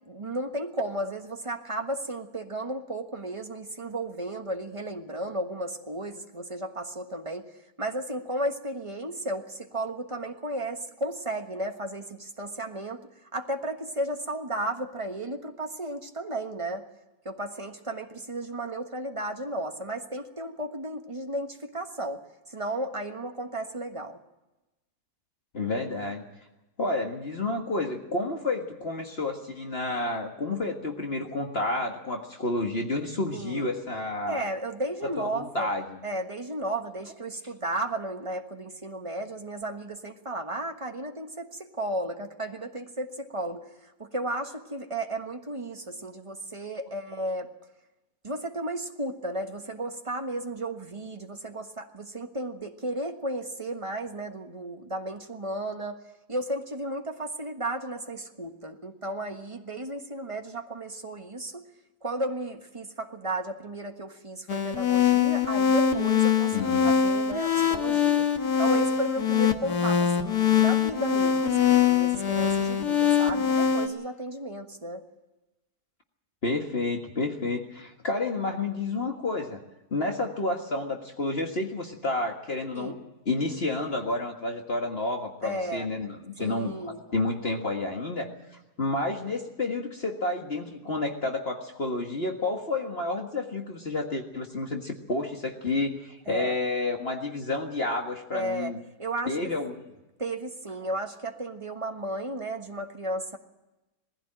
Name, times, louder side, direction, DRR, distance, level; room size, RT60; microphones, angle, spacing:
voice 1, 0.1-7.5 7.8-16.9 17.2-22.2 22.5-24.2 33.3-33.7 34.3-35.7 36.0-43.7 44.0-47.5 48.2-56.0 56.3-61.7 62.0-66.5 66.8-68.3 68.6-75.0 82.7-83.0 85.4-85.9 86.4-87.0 96.3-96.6 98.3-98.7 99.0-99.4 100.2-103.4, right 1 dB, 20° right, 5 dB, 1.4 m, -34 dB
voice 2, 25.5-26.2 26.8-34.4 35.0-36.0 66.5-66.9 76.4-79.6 79.9-83.0 83.3-86.7 87.1-88.3 88.8-98.8 99.3-99.8, left 2 dB, 40° left, 2 dB, 1.9 m, -30 dB
sound 1, 64.5-73.9, left 8 dB, 75° left, 2.0 m, -23 dB
20.0 x 15.5 x 8.8 m, 1.0 s
omnidirectional pair, 1.7 m